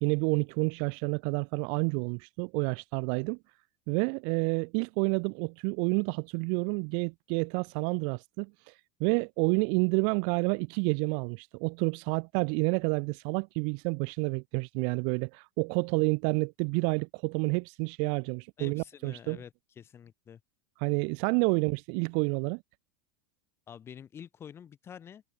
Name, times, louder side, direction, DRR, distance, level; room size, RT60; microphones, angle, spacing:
voice 1, 0.0-3.4 3.9-8.7 9.0-19.4 20.8-22.6, right 40 dB or more, 45° right, 0.5 m, -29 dB
voice 2, 18.6-20.4 23.7-25.2, left 8 dB, 20° left, 7.0 m, -47 dB
supercardioid pair, 165°, 12 cm